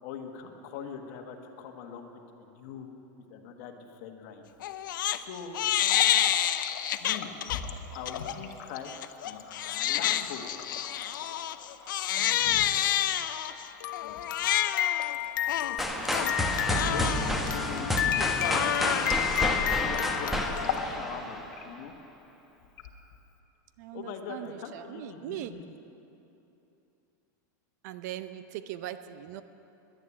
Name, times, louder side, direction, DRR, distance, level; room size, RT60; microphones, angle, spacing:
voice 1, 0.0-2.1 2.4-2.9 3.3-4.4 5.1-5.6 7.0-7.3 7.9-8.9 9.2-10.5 14.0-14.2 16.7-21.9 23.9-25.6, left 7 dB, 55° left, 4 dB, 1.5 m, -41 dB
Crying sobbing, 4.6-5.2 5.5-7.6 8.1-8.3 8.9-20.8, left 12 dB, 90° left, 0.6 m, -29 dB
Water tap faucet, 5.7-19.7 20.0-20.2 20.5-21.0 21.3-22.0 22.6-23.4, left 8 dB, 70° left, 1.2 m, -42 dB
voice 2, 12.2-12.7 22.1-22.2 23.8-25.5 27.8-29.4, right 12 dB, 60° right, 12 dB, 0.7 m, -40 dB
sound 1, 15.8-21.7, equal, ahead, 1.0 m, -30 dB
10.5 x 10.5 x 9.9 m, 2.9 s
supercardioid pair, 150°, 10 cm